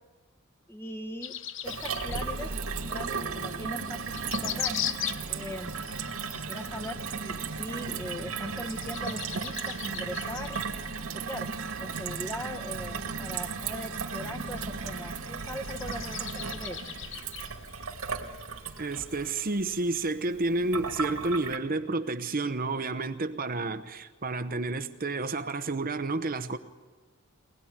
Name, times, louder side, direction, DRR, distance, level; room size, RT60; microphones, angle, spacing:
voice 1, 0.7-1.3 1.6-4.9 5.3-5.7 6.3-10.6 11.3-11.5 11.8-16.9, left 1 dB, 10° left, 1.2 m, -40 dB
sound 1, 1.2-20.0, left 11 dB, 60° left, 0.8 m, -41 dB
Gurgling / Water tap faucet / Sink (filling or washing), 1.6-21.6, right 5 dB, 80° right, 2.3 m, -35 dB
voice 2, 18.8-26.6, right 2 dB, 40° right, 0.9 m, -30 dB
23.0 x 20.0 x 9.9 m
head